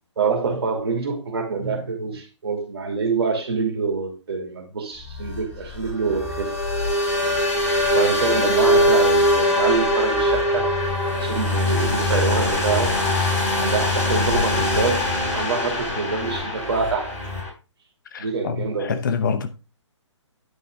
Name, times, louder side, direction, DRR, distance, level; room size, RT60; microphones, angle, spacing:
voice 1, 0.2-6.6 7.4-7.5 7.9-10.7 11.2-13.0 13.6-17.2 18.2-19.0, right 5 dB, 55° right, 3.0 m, -26 dB
sound 1, 5.1-17.5, left 1 dB, 25° left, 4.3 m, -22 dB
voice 2, 18.1-19.5, left 6 dB, 40° left, 0.8 m, -26 dB
10.0 x 5.6 x 3.8 m
figure-of-eight pair, 130°, 16 cm